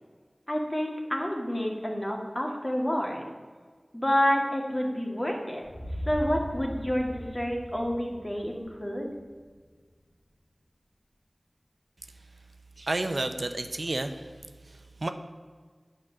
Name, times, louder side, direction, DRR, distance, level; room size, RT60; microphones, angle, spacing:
voice 1, 0.5-3.2 3.9-5.7 6.1-9.1, equal, 30° left, 0 dB, 1.9 m, -29 dB
sound 1, 5.6-9.7, equal, 80° left, 2.3 m, -39 dB
voice 2, 12.8-14.3 14.7-15.1, right 2 dB, 70° right, 7 dB, 0.6 m, -31 dB
8.8 x 5.2 x 7.4 m, 1.5 s
wide cardioid pair, 45°, 0 cm